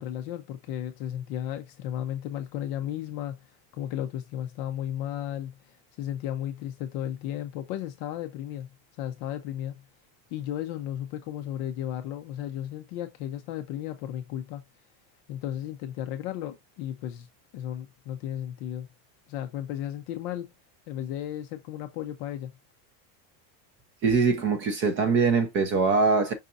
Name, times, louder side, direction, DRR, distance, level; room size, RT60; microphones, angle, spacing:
voice 1, 0.0-3.4 3.7-5.6 6.0-8.7 9.0-9.8 10.3-14.6 15.3-17.3 17.5-18.9 19.3-20.5 20.9-22.5, left 11 dB, 35° left, 0.4 m, -34 dB
voice 2, 24.0-26.3, right 4 dB, 25° right, 0.4 m, -23 dB
5.5 x 3.9 x 2.4 m
cardioid pair, 175°, 49 cm